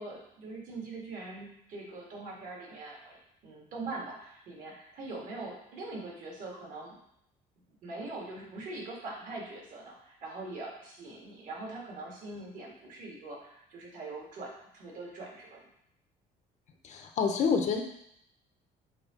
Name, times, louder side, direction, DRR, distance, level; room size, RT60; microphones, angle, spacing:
voice 1, 0.0-3.2 3.4-7.0 7.7-15.7, right 2 dB, 55° right, -3 dB, 2.0 m, -42 dB
voice 2, 16.8-17.8, left 5 dB, 50° left, 4 dB, 0.7 m, -27 dB
6.7 x 2.9 x 5.1 m, 0.74 s
cardioid pair, 150°, 16 cm